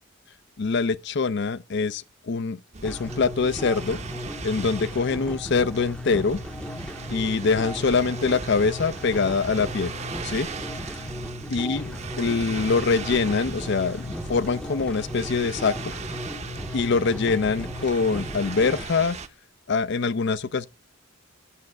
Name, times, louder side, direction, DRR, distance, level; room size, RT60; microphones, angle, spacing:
voice 1, 0.6-4.0 4.4-6.4 7.1-9.9 10.2-10.5 11.5-15.7 16.7-19.2 19.7-20.7, left 4 dB, 55° left, 0.5 m, -24 dB
sound 1, 2.7-19.3, right 4 dB, 30° right, 0.8 m, -39 dB
sound 2, 2.8-18.8, left 1 dB, 5° left, 0.7 m, -36 dB
8.4 x 7.7 x 4.7 m
head